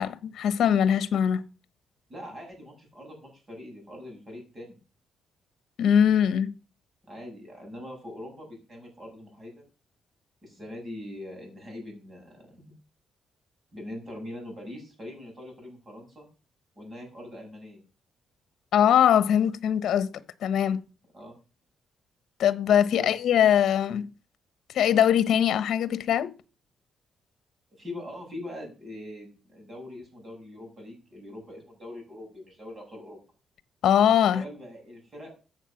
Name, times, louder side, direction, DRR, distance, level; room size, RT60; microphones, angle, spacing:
voice 1, 0.0-1.5 5.8-6.6 18.7-20.1 20.4-20.8 22.4-24.1 24.7-26.3 33.8-34.4, left 9 dB, 65° left, 1.1 m, -22 dB
voice 2, 2.1-4.8 7.1-9.6 10.4-12.7 13.7-16.3 16.8-17.8 21.1-21.4 22.9-23.1 27.8-33.2 34.3-35.3, left 1 dB, 25° right, 6.8 m, -42 dB
14.0 x 7.8 x 6.0 m
cardioid pair, 150°, 0 cm